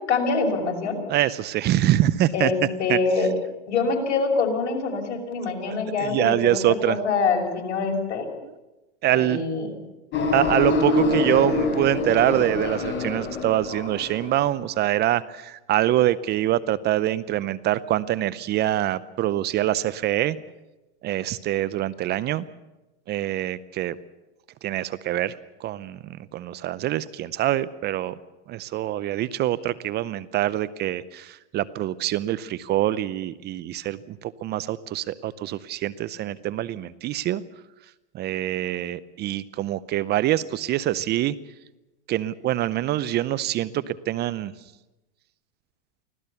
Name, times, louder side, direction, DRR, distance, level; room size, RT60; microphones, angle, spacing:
voice 1, 0.1-1.0 2.3-3.3 3.7-8.2 9.1-9.7, left 4 dB, 70° left, 2 dB, 5.9 m, -25 dB
voice 2, 1.1-2.5 2.9-3.0 5.7-7.0 9.0-9.4 10.3-20.4 21.0-22.4 23.1-24.0 24.6-25.3 25.6-26.0 26.3-28.1 28.5-37.4 38.1-41.3 42.1-44.5, right 13 dB, 30° right, 18 dB, 0.6 m, -25 dB
sound 1, 10.1-14.5, left 3 dB, 30° left, 5.0 m, -25 dB
25.0 x 16.5 x 7.0 m, 1.0 s
hypercardioid pair, 120°, 36 cm